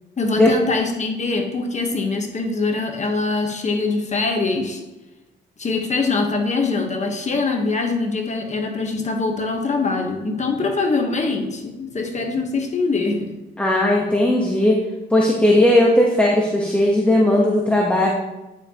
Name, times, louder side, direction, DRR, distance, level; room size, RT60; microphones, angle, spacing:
voice 1, 0.2-4.8 5.6-13.3, left 3 dB, 35° left, 3 dB, 1.3 m, -23 dB
voice 2, 13.6-14.8 15.1-18.1, left 1 dB, 5° left, -2 dB, 1.2 m, -17 dB
10.0 x 5.6 x 3.0 m, 1.0 s
cardioid pair, 90°, 20 cm